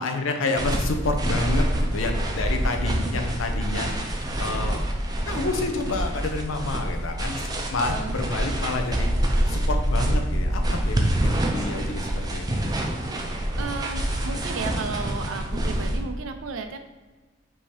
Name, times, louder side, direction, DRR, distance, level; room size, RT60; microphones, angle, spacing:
voice 1, 0.0-4.8 5.3-9.1 9.5-12.7, left 3 dB, 75° left, 4 dB, 0.6 m, -29 dB
sound 1, 0.6-16.0, right 1 dB, 20° right, 0.5 m, -26 dB
voice 2, 7.8-8.1 13.5-16.8, right 4 dB, 80° right, 6 dB, 0.5 m, -34 dB
5.3 x 2.8 x 3.2 m, 1.3 s
head